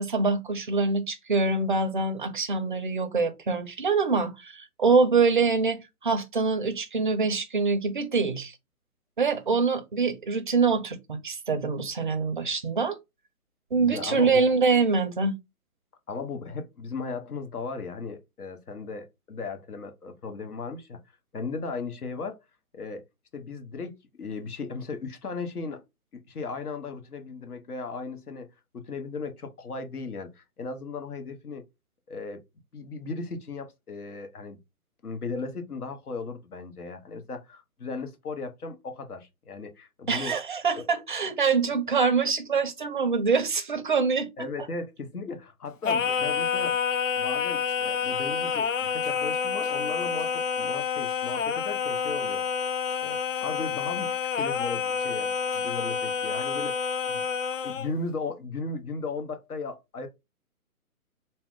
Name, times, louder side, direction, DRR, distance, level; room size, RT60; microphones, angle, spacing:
voice 1, 0.0-8.5 9.2-13.0 13.7-15.4 40.1-44.7, right 4 dB, 35° right, 0.4 m, -25 dB
voice 2, 13.8-14.6 16.1-21.0 21.3-22.4 22.7-23.0 23.3-25.8 26.1-28.5 28.7-31.6 32.1-32.4 32.7-34.6 35.0-40.4 40.7-40.9 44.4-46.8 47.2-52.4 53.0-57.2 57.6-60.1, left 4 dB, 80° left, 1.0 m, -36 dB
Singing, 45.8-57.9, left 6 dB, 60° left, 0.5 m, -28 dB
2.8 x 2.1 x 3.7 m
figure-of-eight pair, 140°, 44 cm